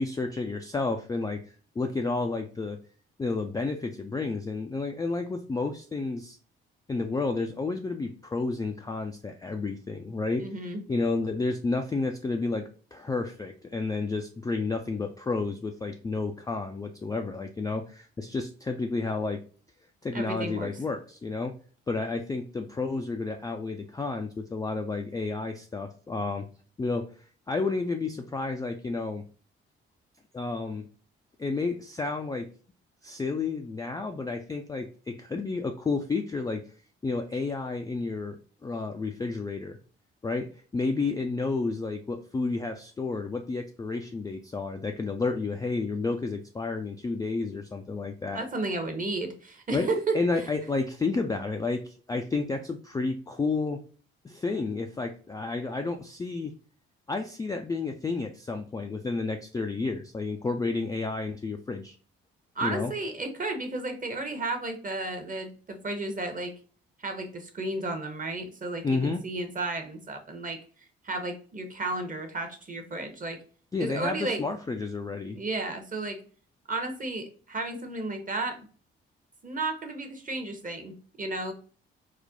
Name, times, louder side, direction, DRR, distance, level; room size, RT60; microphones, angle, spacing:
voice 1, 0.0-2.8 3.2-6.4 6.9-10.4 10.9-19.4 20.0-21.6 21.9-26.5 26.8-27.1 27.5-29.2 30.3-30.9 31.4-32.5 33.0-36.6 37.0-39.8 40.2-48.4 49.7-49.9 50.1-53.8 54.2-56.5 57.1-62.0 62.6-62.9 68.8-69.2 73.7-75.4, left 3 dB, 15° left, 4 dB, 0.3 m, -31 dB
voice 2, 10.4-10.8 20.1-20.7 48.3-50.2 62.6-66.5 67.0-70.6 71.0-73.4 73.8-74.4 75.3-76.2 76.7-78.6 79.4-81.5, right 2 dB, 25° right, 5 dB, 0.8 m, -33 dB
4.1 x 2.1 x 2.5 m, 0.41 s
figure-of-eight pair, 40°, 30 cm